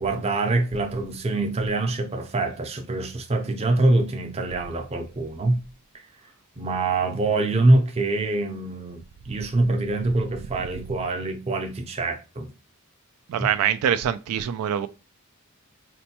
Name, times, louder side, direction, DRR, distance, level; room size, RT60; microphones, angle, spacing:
voice 1, 0.0-5.6 6.6-12.5 13.4-13.5, right 2 dB, 30° right, 0.6 m, -24 dB
voice 2, 13.3-14.9, right 9 dB, 85° right, 0.3 m, -24 dB
4.2 x 2.2 x 2.8 m
head